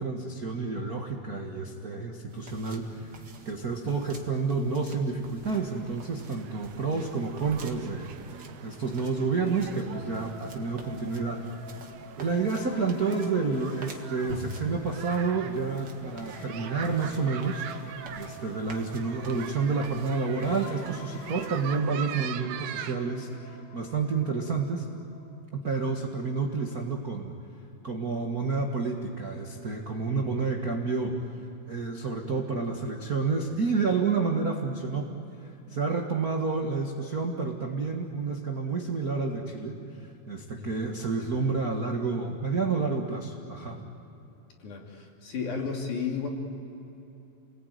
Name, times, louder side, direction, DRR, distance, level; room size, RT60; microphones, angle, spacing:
voice 1, 0.0-11.4 12.2-17.6 18.2-24.9 25.5-27.3 27.8-31.4 31.7-35.1 35.4-43.8, right 4 dB, 55° right, 1 dB, 1.0 m, -29 dB
sound 1, 2.3-21.8, right 1 dB, 40° right, 1.8 m, -48 dB
sound 2, 5.4-23.0, right 10 dB, 85° right, 3.0 m, -43 dB
sound 3, 9.9-25.4, left 1 dB, 85° left, 3.6 m, -48 dB
voice 2, 44.6-46.3, left 6 dB, 55° left, 0 dB, 4.1 m, -33 dB
29.5 x 20.5 x 9.4 m, 3.0 s
omnidirectional pair, 4.4 m